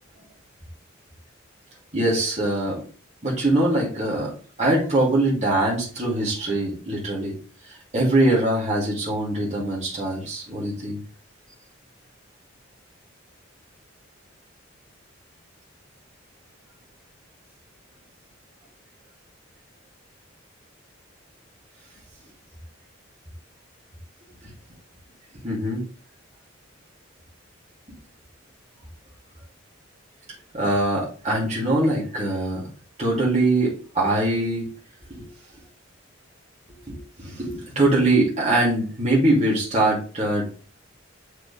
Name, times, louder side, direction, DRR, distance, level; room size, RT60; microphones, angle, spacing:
voice 1, 1.9-2.8 3.2-4.3 4.6-7.4 7.9-11.0 25.4-25.8 30.5-32.6 33.0-34.7 35.1-35.3 36.9-40.5, right 1 dB, 35° right, -5 dB, 2.9 m, -22 dB
7.3 x 5.1 x 3.5 m, 0.38 s
head